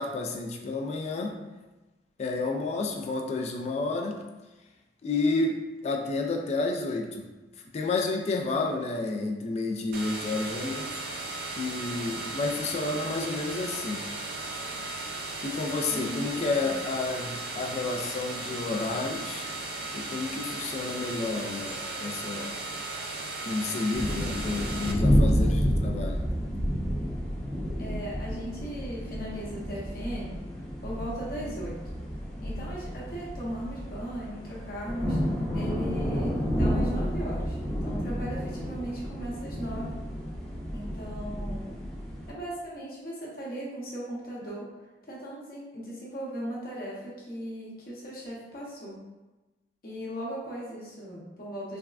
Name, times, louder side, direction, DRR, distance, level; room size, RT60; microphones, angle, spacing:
voice 1, 0.0-1.4 2.2-4.2 5.0-7.3 7.7-11.0 11.6-14.0 15.4-19.4 19.9-22.6 23.5-26.2, left 3 dB, 40° left, 2 dB, 0.3 m, -30 dB
sound 1, 9.9-24.9, right 2 dB, 55° right, 0.3 m, -36 dB
voice 2, 15.9-16.7 27.8-30.4 30.8-31.7 32.4-35.2 35.5-39.9 40.7-41.7 42.3-44.7 45.1-49.0 49.8-51.8, right 1 dB, 55° left, -6 dB, 0.9 m, -38 dB
sound 2, 23.9-42.3, equal, 5° left, 0.7 m, -30 dB
3.4 x 2.1 x 2.3 m, 1.1 s
head